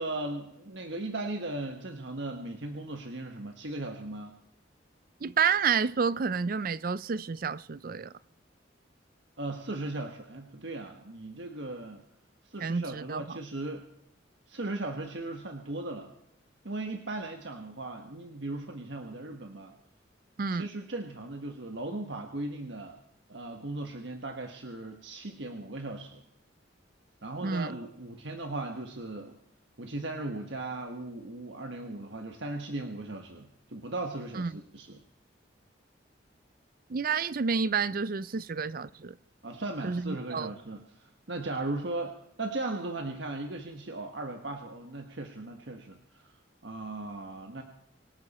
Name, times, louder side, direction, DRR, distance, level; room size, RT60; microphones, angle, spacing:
voice 1, 0.0-4.4 9.4-12.0 12.4-13.8 14.5-16.1 16.6-19.7 20.6-23.0 23.3-26.2 27.2-29.4 29.8-35.0 39.4-46.3 46.6-47.6, right 2 dB, 70° right, 1.4 m, -37 dB
voice 2, 5.2-8.1 12.6-13.2 20.4-20.7 27.4-27.7 34.4-34.5 36.9-39.2 39.8-40.5, right 5 dB, 50° right, 0.5 m, -29 dB
25.5 x 12.0 x 4.3 m
head